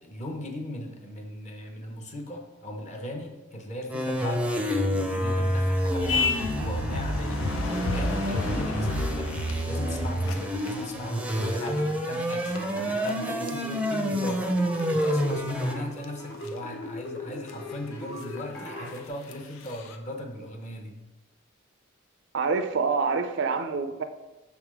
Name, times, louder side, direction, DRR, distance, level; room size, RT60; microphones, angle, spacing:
voice 1, 0.0-7.5 7.8-9.3 9.7-21.0, left 1 dB, 35° left, 2 dB, 0.8 m, -38 dB
sound 1, 3.9-15.7, equal, 5° right, 0.5 m, -28 dB
sound 2, 6.0-11.0 11.4-11.9 12.2-12.6 13.1-13.2 13.5-13.6 14.8-15.3 16.0-16.1 16.3-16.5 17.5-17.6 17.7-17.8 18.2-18.4 19.3-19.4 19.7-20.0, left 3 dB, 80° left, 0.6 m, -31 dB
sound 3, 12.5-19.0, left 2 dB, 55° left, 1.4 m, -39 dB
voice 2, 22.3-24.0, right 4 dB, 60° right, 9 dB, 0.4 m, -26 dB
6.1 x 3.5 x 4.8 m, 1.1 s
head